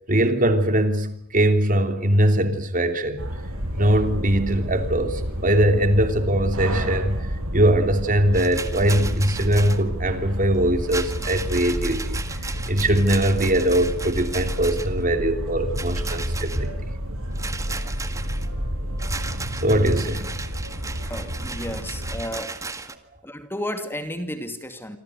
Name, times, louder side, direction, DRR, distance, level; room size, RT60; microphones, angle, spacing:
voice 1, 0.1-3.3 3.8-7.2 7.5-12.2 12.7-16.7 19.6-20.3, right 1 dB, 40° right, 3.1 m, -21 dB
sound 1, 3.2-22.2, equal, 65° right, 7.2 m, -30 dB
Rattle, 8.3-9.8 10.8-15.0 15.7-16.6 17.4-18.5 19.0-23.0, right 3 dB, 15° right, 1.8 m, -35 dB
voice 2, 21.1-22.6 23.2-25.0, left 1 dB, 10° left, 2.4 m, -32 dB
27.5 x 26.0 x 6.6 m
head